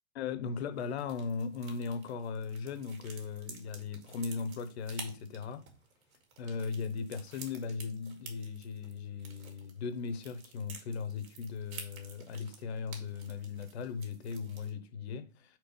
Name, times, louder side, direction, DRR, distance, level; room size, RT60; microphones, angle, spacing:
voice 1, 0.1-5.6 6.4-15.6, left 5 dB, 50° left, 1.0 m, -38 dB
sound 1, 0.8-14.7, right 5 dB, 85° right, 2.2 m, -52 dB
4.6 x 4.5 x 5.2 m
hypercardioid pair, 160°, 41 cm